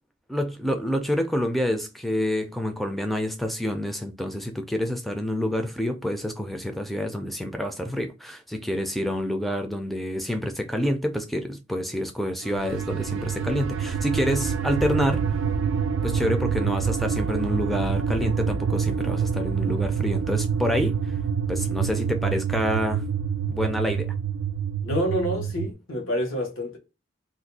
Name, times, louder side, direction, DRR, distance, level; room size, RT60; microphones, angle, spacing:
voice 1, 0.3-15.3 16.0-21.0 21.5-23.0 23.5-24.1, equal, ahead, 0.4 m, -27 dB
sound 1, 12.4-25.7, right 6 dB, 70° right, 0.3 m, -26 dB
voice 2, 24.8-26.8, equal, 85° left, 1.0 m, -27 dB
2.5 x 2.2 x 4.0 m
head